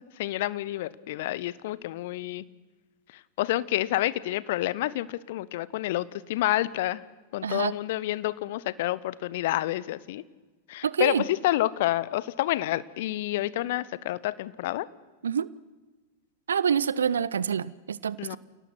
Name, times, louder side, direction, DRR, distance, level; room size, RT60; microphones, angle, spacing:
voice 1, 0.0-2.4 3.1-7.1 7.3-10.2 10.7-14.9 18.2-18.4, left 15 dB, 55° left, 19 dB, 0.8 m, -29 dB
voice 2, 7.4-7.7 10.8-11.2 15.2-15.5 16.5-18.4, right 7 dB, 70° right, 20 dB, 0.6 m, -27 dB
28.5 x 18.0 x 6.1 m, 1.2 s
figure-of-eight pair, 90°, 0 cm